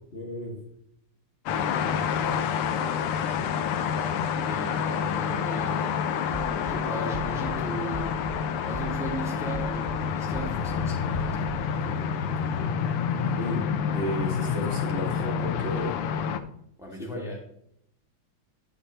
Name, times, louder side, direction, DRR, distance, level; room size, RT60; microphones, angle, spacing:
voice 1, 0.1-0.6 13.3-16.0 17.0-17.4, left 1 dB, 30° left, -3 dB, 2.1 m, -34 dB
sound 1, 1.5-16.4, left 7 dB, 90° left, 1.7 m, -28 dB
voice 2, 4.4-5.9 6.6-8.1 8.6-12.7 13.2-13.6 16.8-17.4, right 1 dB, ahead, -2 dB, 2.2 m, -38 dB
sound 2, 6.3-6.7 7.1-7.5 7.9-8.3 8.7-9.2 9.5-10.0 10.3-10.8 11.1-11.6, right 3 dB, 45° right, 0.4 m, -38 dB
10.0 x 9.1 x 3.0 m, 0.74 s
omnidirectional pair, 2.4 m